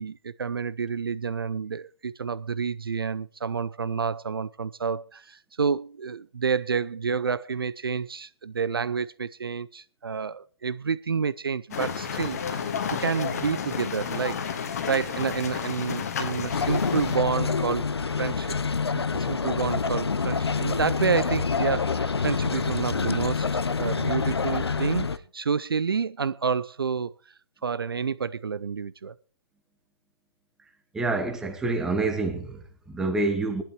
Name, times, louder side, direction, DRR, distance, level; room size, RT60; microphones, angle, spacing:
voice 1, 0.0-18.5 18.9-27.1 27.6-29.2, right 6 dB, 55° right, 0.5 m, -29 dB
sound 1, 11.7-17.2, left 7 dB, 35° left, 1.6 m, -31 dB
sound 2, 16.5-25.2, left 5 dB, 65° left, 0.8 m, -27 dB
voice 2, 30.9-33.6, right 3 dB, 5° right, 0.9 m, -27 dB
20.0 x 11.5 x 3.0 m
figure-of-eight pair, 145°, 14 cm